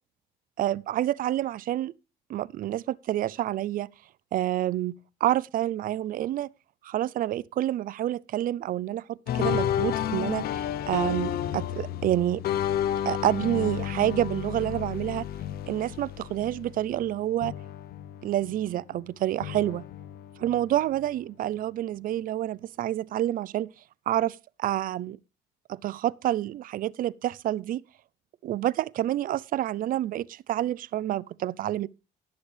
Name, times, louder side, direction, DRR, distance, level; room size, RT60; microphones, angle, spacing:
voice 1, 0.6-1.9 2.3-3.9 4.3-6.5 6.8-12.4 13.0-15.3 15.7-17.5 18.2-19.8 20.4-23.7 24.1-25.2 25.7-27.8 28.4-31.9, right 13 dB, 55° right, 0.5 m, -28 dB
sound 1, 9.3-17.2 17.4-19.0 19.4-21.0, left 10 dB, 65° left, 0.8 m, -31 dB
20.0 x 7.0 x 3.3 m
cardioid pair, 110°, 17 cm